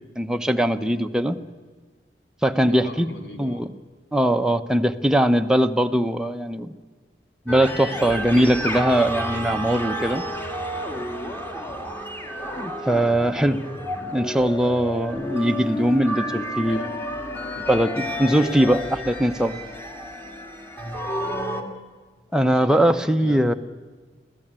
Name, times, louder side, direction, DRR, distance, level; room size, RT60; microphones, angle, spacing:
voice 1, 0.2-1.4 2.4-3.1 3.4-3.7 4.1-6.7 7.5-10.2 12.6-13.6 14.1-16.8 17.6-19.6 22.3-23.5, equal, 5° right, 6 dB, 0.8 m, -21 dB
voice 2, 2.7-3.7 12.8-13.1 16.7-17.0 20.8-21.0 22.4-23.6, left 1 dB, 70° left, 5 dB, 3.1 m, -40 dB
sound 1, 7.5-21.6, equal, 10° left, 2.2 m, -31 dB
25.0 x 15.5 x 8.9 m, 1.4 s
head